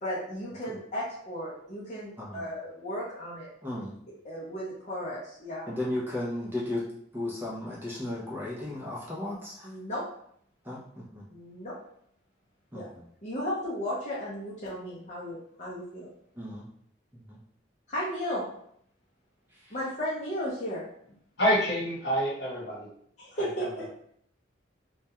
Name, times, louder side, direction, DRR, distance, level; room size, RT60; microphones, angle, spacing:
voice 1, 0.0-3.5 4.2-5.7 9.6-10.0 11.3-11.7 12.7-12.9 13.2-16.1 17.9-18.4 19.7-20.8 23.2-23.9, equal, 35° left, -8 dB, 0.5 m, -35 dB
voice 2, 5.7-6.8 7.1-9.7 10.6-11.2 12.7-13.0 16.4-16.7 17.1-17.4, left 1 dB, 10° right, -6 dB, 0.5 m, -35 dB
voice 3, 21.4-22.9 23.4-23.7, equal, 65° left, -6 dB, 1.0 m, -27 dB
2.2 x 2.2 x 2.8 m, 0.67 s
head